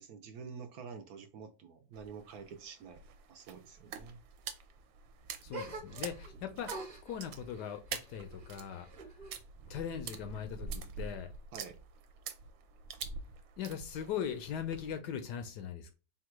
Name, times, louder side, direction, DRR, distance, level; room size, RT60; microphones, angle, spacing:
voice 1, 0.0-3.0 3.3-4.2 11.5-11.8, right 5 dB, 70° right, 0.9 m, -48 dB
sound 1, 1.9-15.0, right 6 dB, 85° right, 1.3 m, -46 dB
voice 2, 5.4-8.9 9.1-9.2 9.6-11.3 13.6-15.9, left 8 dB, 70° left, 1.1 m, -40 dB
sound 2, 5.5-6.3 6.6-9.4 9.7-10.5, right 2 dB, 30° right, 0.9 m, -47 dB
3.8 x 2.3 x 4.4 m
omnidirectional pair, 2.1 m